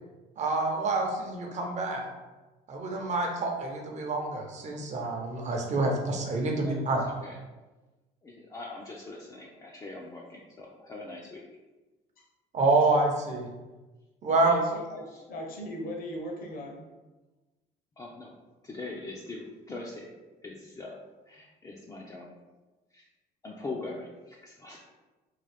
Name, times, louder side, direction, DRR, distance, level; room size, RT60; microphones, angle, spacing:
voice 1, 0.4-2.1 2.7-7.0 12.5-13.5 14.2-14.6, right 3 dB, 45° right, 1 dB, 0.8 m, -27 dB
voice 2, 6.6-7.4 8.2-11.4 15.1-15.2 18.0-18.3 18.6-20.1 20.4-21.0 21.3-22.3 22.9-23.0 23.4-24.8, left 2 dB, 20° left, -3 dB, 0.4 m, -42 dB
voice 3, 14.3-16.8, equal, 60° left, 1 dB, 0.8 m, -38 dB
3.7 x 2.4 x 3.3 m, 1.2 s
cardioid pair, 110°, 17 cm